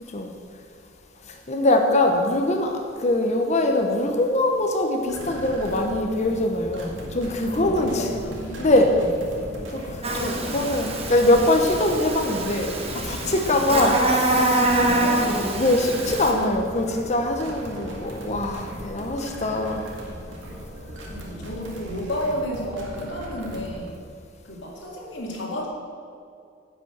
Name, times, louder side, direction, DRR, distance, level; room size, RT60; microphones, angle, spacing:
voice 1, 1.3-8.2 8.6-9.0 9.7-12.7 13.0-14.7 15.1-15.2 15.6-19.8, left 1 dB, 40° left, 3 dB, 1.0 m, -23 dB
sound 1, 5.1-24.0, equal, 75° right, 2.0 m, -38 dB
voice 2, 7.6-8.7 13.2-13.6 14.7-15.4 21.1-24.0 24.4-25.7, equal, 70° left, -2 dB, 2.2 m, -32 dB
Buzz, 10.0-16.3, right 1 dB, 30° right, 1.3 m, -25 dB
10.5 x 6.0 x 7.9 m, 2.3 s
head